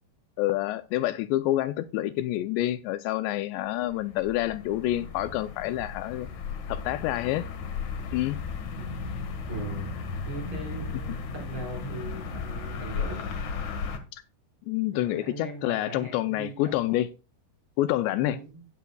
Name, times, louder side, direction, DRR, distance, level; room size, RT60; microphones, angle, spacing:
voice 1, 0.4-6.3 6.7-7.5 8.1-8.4 14.1-14.2 14.7-17.1 17.8-18.4, left 15 dB, 85° left, 2.7 m, -28 dB
sound 1, 3.7-14.0, left 5 dB, 60° left, 2.2 m, -35 dB
voice 2, 8.8-9.1 9.5-9.9 10.2-13.2 14.9-16.7 18.2-18.7, right 3 dB, 25° right, 5.4 m, -39 dB
14.0 x 9.4 x 2.3 m
omnidirectional pair, 5.1 m